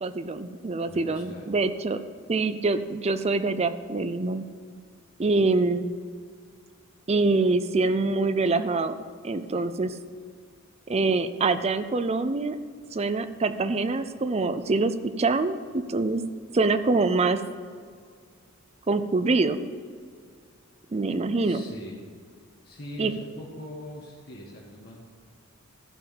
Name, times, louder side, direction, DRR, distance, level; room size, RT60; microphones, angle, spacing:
voice 1, 0.0-2.0 2.3-4.5 5.2-5.8 7.1-8.9 9.2-10.0 10.9-12.6 12.9-16.2 16.5-17.4 18.9-19.6 20.9-21.6 23.0-23.1, right 3 dB, 30° right, 11 dB, 0.5 m, -25 dB
voice 2, 0.9-1.4 21.4-22.0 22.6-25.0, left 1 dB, 45° left, -4 dB, 1.4 m, -42 dB
13.5 x 4.7 x 7.2 m, 2.1 s
head